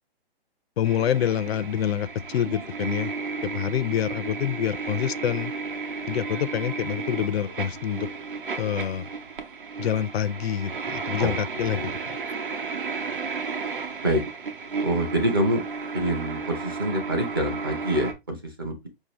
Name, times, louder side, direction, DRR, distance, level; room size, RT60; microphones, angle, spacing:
voice 1, 0.8-3.1 3.4-5.5 6.1-8.1 8.6-9.1 9.8-11.9, left 10 dB, 80° left, 0.5 m, -27 dB
sound 1, 0.8-18.1, right 4 dB, 60° right, 0.9 m, -33 dB
voice 2, 11.2-11.9 14.0-14.2 14.8-15.6 15.9-18.9, right 1 dB, 25° right, 0.5 m, -26 dB
4.9 x 2.7 x 3.0 m
hypercardioid pair, 180°, 30 cm